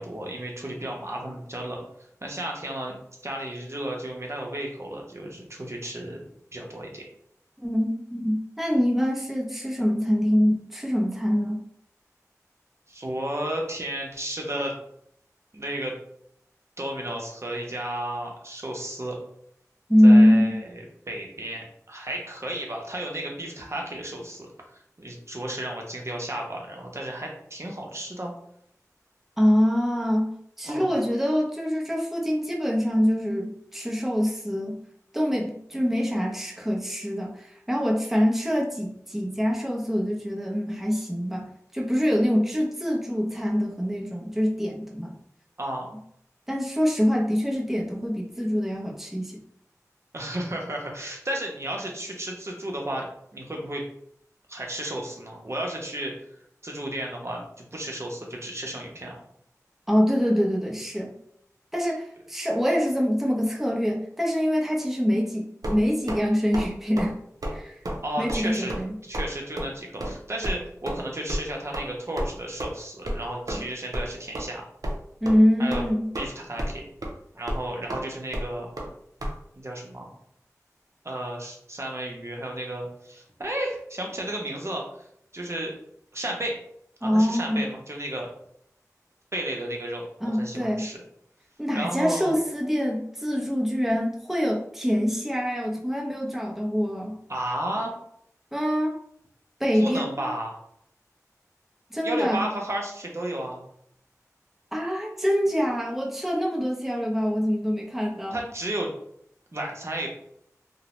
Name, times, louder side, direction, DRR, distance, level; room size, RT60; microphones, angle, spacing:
voice 1, 0.0-1.8 2.2-2.9 3.2-6.2 6.5-7.0 12.9-14.7 15.5-16.0 16.8-19.2 20.0-20.7 21.1-28.3 30.6-30.9 45.6-45.9 50.1-53.8 54.5-56.1 56.6-59.2 68.0-68.7 69.0-74.6 75.6-75.8 76.1-76.8 77.4-78.7 79.6-80.1 81.0-85.1 85.3-85.7 86.1-86.6 87.0-88.3 89.3-90.1 90.3-91.0 91.7-92.3 97.3-97.9 99.7-100.6 102.0-103.6 108.3-108.9 109.5-110.1, right 1 dB, 50° right, -1 dB, 0.7 m, -33 dB
voice 2, 7.6-11.6 19.9-20.6 29.4-30.3 30.6-34.8 35.1-45.2 46.5-49.3 59.9-61.1 61.7-67.1 67.5-67.8 68.2-69.0 73.5-73.6 75.2-76.1 87.0-87.7 90.2-90.9 91.6-97.2 98.5-99.0 99.6-100.3 101.9-102.4 104.7-108.4, equal, 5° right, -2 dB, 0.5 m, -24 dB
sound 1, 65.6-66.2 66.5-66.7 67.0-67.1 67.4-67.6 67.9-68.0 68.3-68.4 68.7-68.8 69.1-69.3 69.6-69.7 70.0-70.1 70.4-70.5 70.9-71.0 71.3-71.4 71.7-71.9 72.2-72.3 72.6-72.7 73.1-73.2 73.5-73.6 73.9-74.1 74.3-74.4 74.8-75.0 75.3-75.4 75.7-76.3 76.6-76.8 77.0-77.1 77.5-77.6 77.9-78.0 78.3-78.5 78.8-78.9 79.2-79.3, equal, 90° right, 0.4 m, -30 dB
2.6 x 2.0 x 3.0 m, 0.70 s
wide cardioid pair, 50°, 6 cm